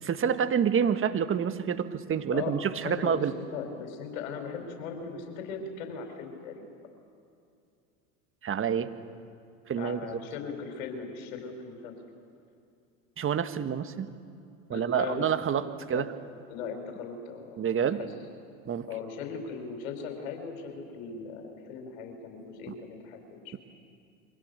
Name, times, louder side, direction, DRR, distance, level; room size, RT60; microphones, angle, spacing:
voice 1, 0.0-3.3 8.4-8.9 9.7-10.0 13.2-14.1 14.7-16.1 17.6-18.0 18.6-18.9, right 7 dB, 30° right, 9 dB, 1.6 m, -28 dB
voice 2, 2.8-6.6 9.8-11.9 14.7-15.2 15.9-16.1 16.5-18.1 18.9-23.5, left 6 dB, 70° left, 4 dB, 5.0 m, -39 dB
27.5 x 24.5 x 6.8 m, 2.5 s
hypercardioid pair, 85°, 43 cm